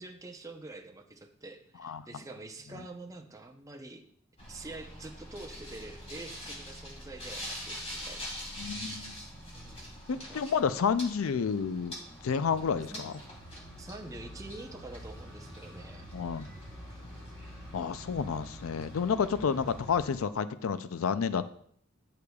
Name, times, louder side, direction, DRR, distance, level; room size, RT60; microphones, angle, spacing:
voice 1, 0.0-4.0 4.5-8.4 9.5-10.5 10.7-10.8 12.9-13.1 13.8-16.1, right 2 dB, 15° right, 3 dB, 0.7 m, -46 dB
sound 1, 4.4-20.1, equal, 30° left, 3.1 m, -44 dB
sound 2, 7.9-19.8, right 1 dB, 10° left, 2.8 m, -57 dB
voice 2, 8.6-9.1 10.1-11.9 12.2-13.1 16.1-16.5 17.7-21.5, left 6 dB, 90° left, 13 dB, 0.4 m, -30 dB
13.0 x 6.7 x 2.3 m, 0.64 s
head